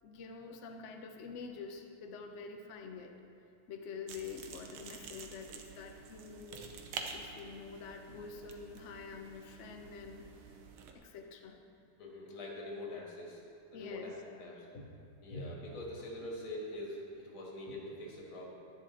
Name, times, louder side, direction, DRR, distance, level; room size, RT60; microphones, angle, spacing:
voice 1, 0.0-3.1 3.7-6.7 7.1-10.6 10.9-11.6 13.7-14.2, left 5 dB, 55° left, 3 dB, 0.8 m, -47 dB
sound 1, 4.1-10.9, right 5 dB, 85° right, 1.7 m, -48 dB
voice 2, 12.0-13.4 13.7-14.9 15.2-18.5, left 1 dB, 85° left, -2 dB, 2.7 m, -44 dB
11.0 x 11.0 x 3.8 m, 2.6 s
omnidirectional pair, 2.2 m